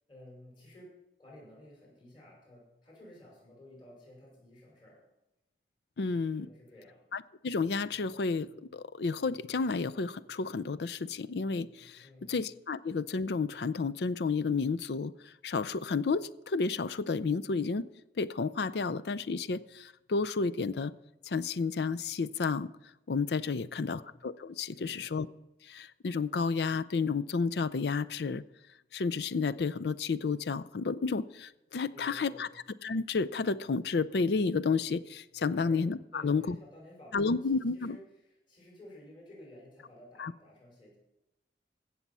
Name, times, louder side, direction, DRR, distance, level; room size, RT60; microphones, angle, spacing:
voice 1, 0.1-0.9 1.2-5.0 6.4-7.0 12.0-12.4 23.5-24.1 24.7-25.2 31.9-32.5 35.5-35.8 36.1-41.0, left 1 dB, 30° left, -3 dB, 5.3 m, -53 dB
voice 2, 6.0-6.5 7.1-17.9 18.2-20.9 21.2-22.7 23.1-25.3 25.6-28.4 28.9-32.5 32.8-36.6 37.1-38.0 40.2-40.3, left 4 dB, 65° left, 14 dB, 0.5 m, -31 dB
15.5 x 7.2 x 5.5 m, 0.94 s
head